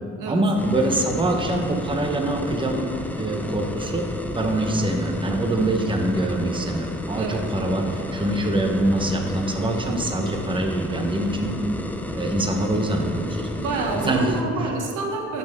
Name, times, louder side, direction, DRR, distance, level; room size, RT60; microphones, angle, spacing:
voice 1, 0.3-2.8 3.2-4.0 4.3-11.6 12.1-13.5 14.0-14.3, right 1 dB, 15° right, 2 dB, 1.1 m, -24 dB
sound 1, 0.6-14.4, left 1 dB, 5° left, 0.6 m, -32 dB
voice 2, 5.6-6.0 7.1-7.4 11.4-11.6 13.5-15.4, right 3 dB, 90° right, 2 dB, 1.2 m, -28 dB
11.5 x 6.8 x 3.7 m, 2.5 s
cardioid pair, 90°, 30 cm